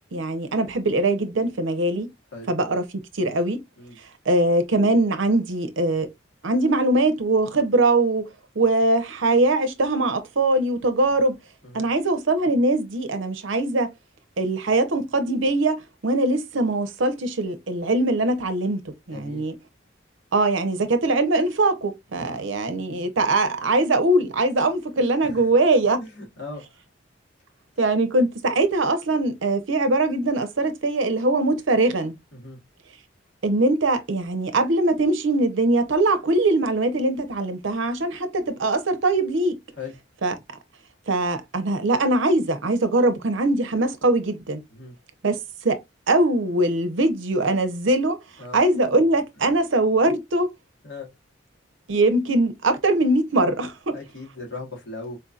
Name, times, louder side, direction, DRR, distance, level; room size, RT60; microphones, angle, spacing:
voice 1, 0.1-2.1 2.5-2.8 3.1-3.6 4.3-6.1 6.4-8.3 8.6-11.3 11.7-13.9 14.4-18.8 19.1-19.5 20.3-26.0 27.8-32.2 33.4-39.6 40.2-40.4 41.1-44.6 45.2-45.8 46.1-48.2 48.5-50.5 51.9-54.0, right 2 dB, 75° right, 0.7 m, -22 dB
voice 2, 19.1-19.4 22.1-22.4 25.2-25.5 26.0-26.6 32.3-32.6 39.8-39.9 44.7-44.9 48.4-48.6 50.8-51.1 53.9-55.2, left 3 dB, 65° left, 1.7 m, -38 dB
4.4 x 2.7 x 2.3 m
head